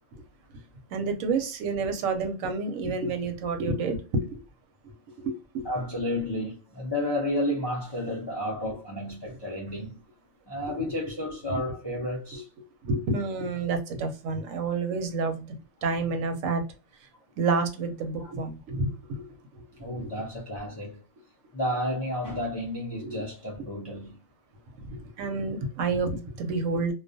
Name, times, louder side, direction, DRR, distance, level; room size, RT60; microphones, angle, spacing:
voice 1, 0.9-4.4 5.2-5.7 10.7-10.9 12.3-12.4 12.8-16.6 17.4-19.3 23.0-23.2 24.9-26.9, right 3 dB, 85° right, 1.0 m, -29 dB
voice 2, 5.6-10.0 10.5-12.5 18.2-18.3 19.8-21.0 21.5-24.2, left 1 dB, 40° left, 0.3 m, -31 dB
2.3 x 2.2 x 2.5 m
omnidirectional pair, 1.4 m